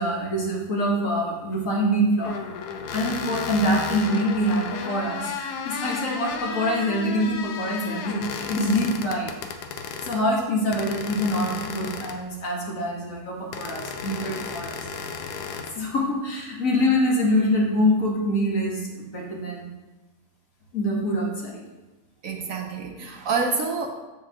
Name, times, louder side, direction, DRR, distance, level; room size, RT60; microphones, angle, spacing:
voice 1, 0.0-2.4 2.9-9.3 10.0-14.9 15.7-19.7 20.7-21.6, equal, 55° left, -2 dB, 1.7 m, -25 dB
sound 1, 2.2-10.2 10.7-12.3 13.5-15.7, left 6 dB, 80° left, 1.2 m, -33 dB
voice 2, 22.2-23.9, right 4 dB, 65° right, 3 dB, 1.0 m, -27 dB
7.9 x 7.3 x 2.9 m, 1.1 s
omnidirectional pair, 1.7 m